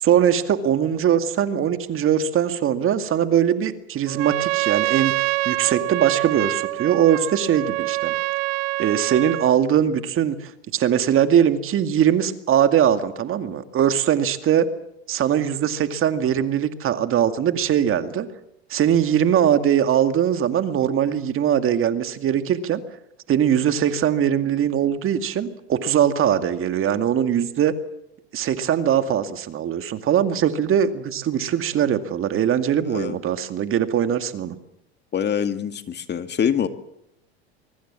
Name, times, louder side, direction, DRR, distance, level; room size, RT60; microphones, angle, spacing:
voice 1, 0.0-5.1 5.5-8.1 8.8-14.7 15.1-18.3 18.7-22.8 23.3-27.7 28.3-34.6, right 9 dB, 40° right, 9 dB, 2.2 m, -21 dB
Trumpet, 4.1-9.6, right 21 dB, 65° right, 1.0 m, -25 dB
voice 2, 35.1-36.7, left 8 dB, 30° left, 9 dB, 2.1 m, -24 dB
24.0 x 23.5 x 7.5 m, 0.81 s
hypercardioid pair, 90°, 33 cm